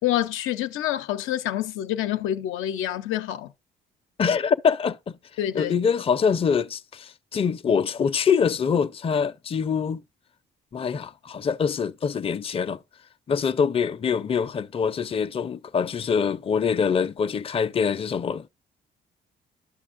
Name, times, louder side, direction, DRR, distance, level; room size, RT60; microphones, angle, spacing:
voice 1, 0.0-3.5 5.4-5.7, left 12 dB, 90° left, 0.6 m, -27 dB
voice 2, 4.2-5.1 5.5-10.0 10.7-12.8 13.3-18.4, left 6 dB, 30° left, 0.5 m, -24 dB
12.0 x 6.2 x 2.5 m
cardioid pair, 90°, 20 cm